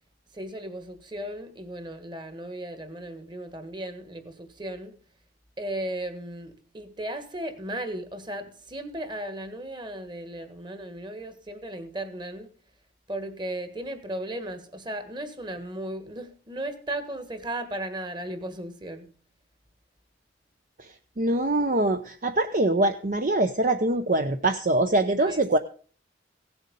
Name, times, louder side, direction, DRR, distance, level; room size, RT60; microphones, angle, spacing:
voice 1, 0.3-4.9 5.6-12.5 13.1-19.1 25.2-25.6, right 1 dB, 25° right, 1.6 m, -36 dB
voice 2, 21.2-25.6, right 2 dB, 45° right, 0.7 m, -23 dB
17.0 x 8.0 x 5.4 m
head